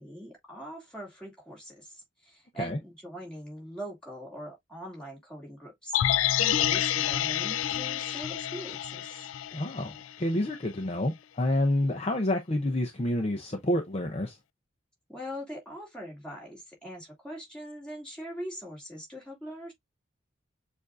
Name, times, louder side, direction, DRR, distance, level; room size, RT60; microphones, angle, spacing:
voice 1, 0.0-6.0 6.4-9.3 15.1-19.7, equal, 5° left, 2.6 m, -42 dB
sound 1, 5.9-10.1 10.4-10.5, left 11 dB, 80° left, 0.3 m, -28 dB
voice 2, 9.5-14.4, left 1 dB, 30° left, 0.6 m, -28 dB
7.0 x 2.6 x 2.4 m
head